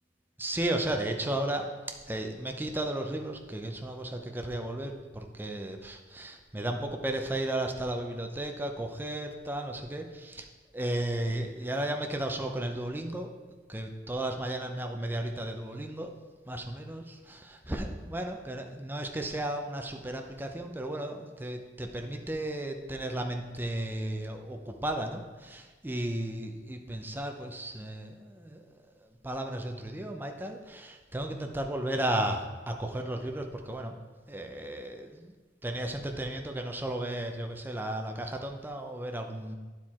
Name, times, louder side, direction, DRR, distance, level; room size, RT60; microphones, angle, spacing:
voice 1, 0.4-1.7 2.1-10.5 10.7-13.3 13.7-16.1 16.5-28.6 29.0-33.9 34.3-35.3 35.6-39.6, right 1 dB, 10° right, 3 dB, 0.6 m, -34 dB
9.8 x 4.5 x 4.3 m, 1.3 s
head